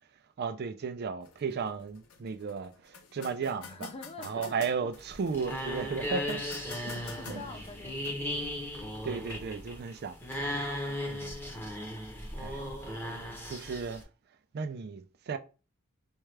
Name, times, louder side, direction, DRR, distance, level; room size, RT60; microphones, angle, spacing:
voice 1, 0.4-3.9 4.2-6.4 6.8-7.4 9.0-10.2 11.1-11.4 12.4-12.6 13.5-14.0 14.5-15.4, right 5 dB, 50° right, 0.4 m, -35 dB
sound 1, 1.2-11.2, left 6 dB, 80° left, 0.6 m, -52 dB
voice 2, 3.7-4.9 6.6-8.2, left 2 dB, 30° left, 0.4 m, -46 dB
sound 2, 4.9-14.0, left 1 dB, 10° left, 0.8 m, -37 dB
4.4 x 2.3 x 3.2 m
head